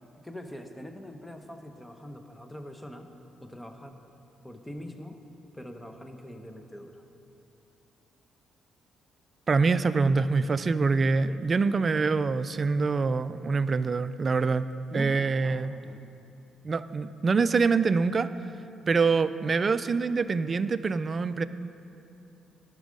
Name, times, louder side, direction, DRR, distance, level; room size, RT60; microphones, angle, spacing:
voice 1, 0.2-4.0 4.4-5.2 5.5-7.0 11.3-11.4 14.9-16.1, left 1 dB, 10° left, 6 dB, 0.8 m, -43 dB
voice 2, 9.5-14.7 14.9-15.7 16.6-18.3 18.9-21.5, right 4 dB, 40° right, 13 dB, 0.3 m, -25 dB
11.5 x 6.2 x 5.2 m, 2.8 s
cardioid pair, 90°, 0 cm